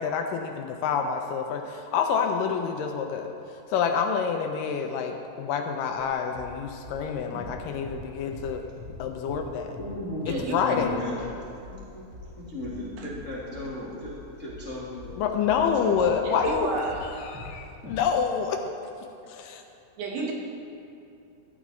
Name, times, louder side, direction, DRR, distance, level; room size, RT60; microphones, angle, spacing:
voice 1, 0.0-3.3 3.7-8.7 9.0-9.8 10.3-11.0 15.2-16.7 17.2-18.6 19.0-19.6, left 6 dB, 80° left, 4 dB, 2.1 m, -27 dB
sound 1, 6.0-6.1 6.4-6.6 6.8-9.0 9.2-9.5 9.7-10.0 10.2-10.4 10.7-10.9 11.2-16.6 16.9-17.6 17.8-18.0, left 2 dB, 10° right, 0.7 m, -43 dB
voice 2, 9.8-11.3 11.7-12.1 12.4-14.1 14.4-16.2, left 2 dB, 50° left, -7 dB, 0.8 m, -35 dB
voice 3, 10.3-10.7 13.0-13.1 16.2-17.2 20.0-20.3, right 3 dB, 90° right, 0 dB, 3.3 m, -32 dB
14.5 x 11.5 x 3.2 m, 2.8 s
omnidirectional pair, 4.2 m